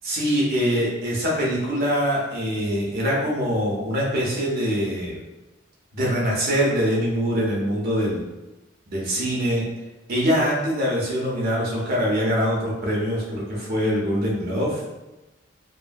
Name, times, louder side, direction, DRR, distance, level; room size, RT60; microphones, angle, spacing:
voice 1, 0.0-5.2 5.9-8.3 8.9-9.7 10.1-14.8, equal, 55° right, -4 dB, 0.9 m, -23 dB
3.0 x 2.6 x 2.2 m, 1.0 s
head